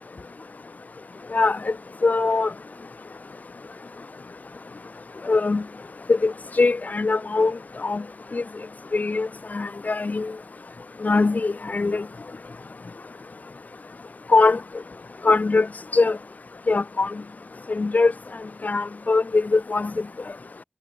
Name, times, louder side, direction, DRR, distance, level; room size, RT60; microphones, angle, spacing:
voice 1, 2.0-2.5 5.3-5.6 6.1-8.0 8.3-8.4 8.9-9.3 9.5-10.3 11.0-12.0 14.3-14.6 15.2-15.7 15.9-16.2 16.7-17.1 17.7-18.1 18.6-19.9, left 3 dB, 55° left, 0.5 m, -21 dB
wide cardioid pair, 65°, 3 cm